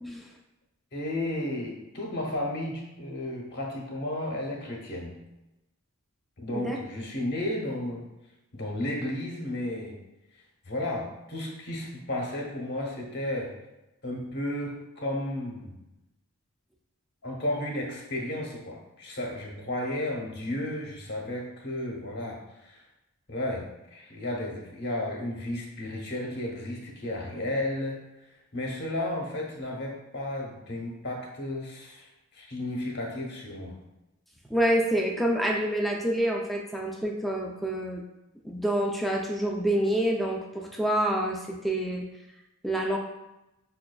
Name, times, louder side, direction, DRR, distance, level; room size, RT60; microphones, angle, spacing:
voice 1, 0.9-5.2 6.4-8.0 8.5-9.9 10.6-13.5 14.0-15.8 17.2-22.8 23.3-28.0 28.5-33.7, left 1 dB, 50° left, -1 dB, 0.8 m, -33 dB
voice 2, 34.5-38.0 38.4-42.1 42.6-43.0, right 1 dB, ahead, 0 dB, 0.3 m, -27 dB
5.8 x 2.3 x 2.2 m, 0.95 s
head